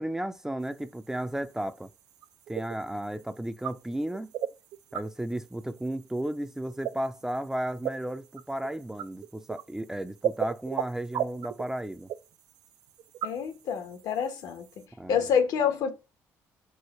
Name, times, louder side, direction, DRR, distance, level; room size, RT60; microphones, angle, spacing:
voice 1, 0.0-1.9 2.5-4.3 4.9-12.1 15.0-15.3, right 1 dB, 10° right, 0.4 m, -34 dB
sound 1, 0.6-14.9, right 10 dB, 70° right, 0.4 m, -38 dB
voice 2, 13.2-14.6 15.1-15.9, left 7 dB, 75° left, 0.9 m, -27 dB
4.7 x 2.1 x 4.0 m
cardioid pair, 90°, 7 cm